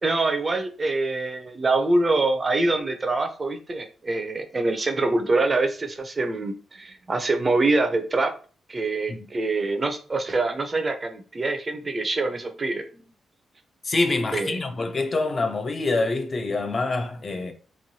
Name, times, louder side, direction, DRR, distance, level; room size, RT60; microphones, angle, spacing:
voice 1, 0.0-8.3 8.7-13.1 14.3-14.6, right 2 dB, 30° right, 0.5 m, -25 dB
voice 2, 13.8-17.5, left 3 dB, 35° left, 0.4 m, -26 dB
3.0 x 2.2 x 2.7 m
cardioid pair, 110°, 0 cm